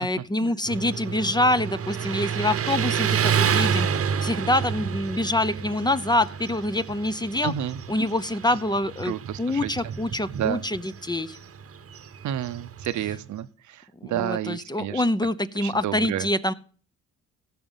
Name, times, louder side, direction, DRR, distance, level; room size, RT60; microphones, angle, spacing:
voice 1, 0.0-7.5 7.9-11.4 14.0-16.5, left 1 dB, 15° left, 14 dB, 0.7 m, -26 dB
Motorcycle, 0.7-13.3, right 7 dB, 50° right, 1.0 m, -29 dB
voice 2, 7.4-7.8 9.0-9.9 10.3-10.6 12.2-15.0 15.6-16.3, right 11 dB, 70° right, 12 dB, 0.8 m, -30 dB
16.5 x 6.2 x 5.7 m, 0.40 s
cardioid pair, 90°, 30 cm